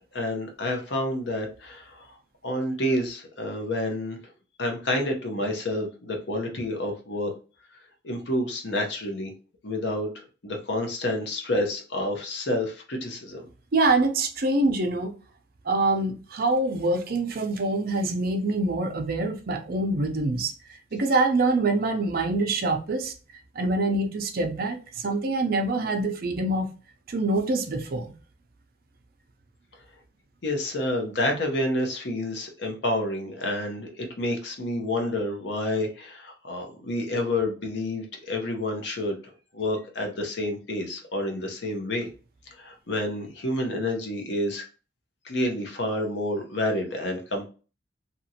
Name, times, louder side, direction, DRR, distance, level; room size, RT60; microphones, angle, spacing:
voice 1, 0.1-2.2 2.4-4.2 4.6-7.3 8.0-9.3 9.6-10.1 10.4-13.5 30.4-39.2 39.5-42.1 42.5-44.6 45.2-47.5, left 1 dB, 65° left, 0.8 m, -29 dB
voice 2, 13.7-15.1 15.6-20.5 20.9-23.1 23.6-26.7 27.1-28.1, right 2 dB, 55° right, 0.5 m, -25 dB
2.9 x 2.6 x 2.8 m
head